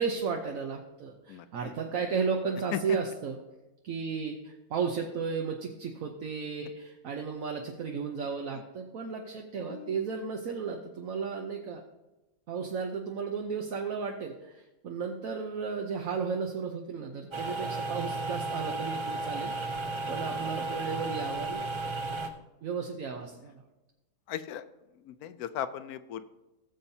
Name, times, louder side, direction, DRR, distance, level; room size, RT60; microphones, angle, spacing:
voice 1, 0.0-3.4 3.8-11.8 12.5-19.5 20.1-21.6 22.6-23.6, right 5 dB, 70° right, 2 dB, 1.2 m, -34 dB
voice 2, 1.3-1.7 2.7-2.8 9.7-10.0 24.3-24.6 25.1-26.2, left 10 dB, 85° left, 12 dB, 1.1 m, -37 dB
sound 1, 17.3-22.3, right 2 dB, 30° right, 0.5 m, -34 dB
17.0 x 7.1 x 2.7 m, 1.0 s
omnidirectional pair, 1.5 m